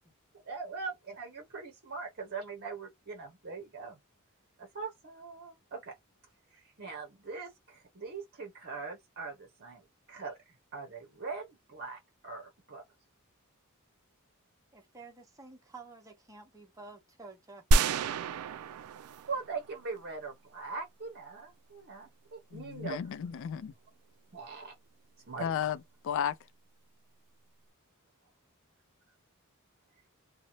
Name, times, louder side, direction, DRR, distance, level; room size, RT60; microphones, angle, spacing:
voice 1, 0.5-4.0 4.6-6.0 6.8-10.4 10.7-12.8 19.3-23.0 24.3-24.7 25.3-25.5, right 4 dB, 50° right, 0.8 m, -41 dB
voice 2, 14.7-17.9, right 3 dB, 15° right, 0.9 m, -51 dB
sound 1, 17.7-20.0, right 2 dB, 85° right, 0.3 m, -28 dB
voice 3, 22.5-23.7 25.4-26.4, left 8 dB, 60° left, 0.3 m, -34 dB
2.7 x 2.1 x 2.9 m
head